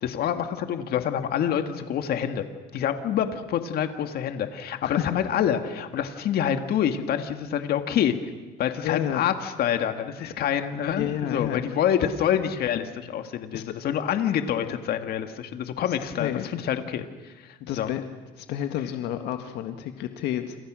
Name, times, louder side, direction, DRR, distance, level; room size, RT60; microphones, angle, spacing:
voice 1, 0.0-2.4 2.7-8.1 8.6-17.9, left 9 dB, 65° left, 7 dB, 2.1 m, -27 dB
voice 2, 8.8-9.2 10.2-10.3 10.9-11.7 13.5-13.6 15.9-16.5 17.6-18.0 18.4-20.6, left 11 dB, 85° left, 6 dB, 1.8 m, -30 dB
29.0 x 28.0 x 6.4 m, 1.3 s
cardioid pair, 110°, 17 cm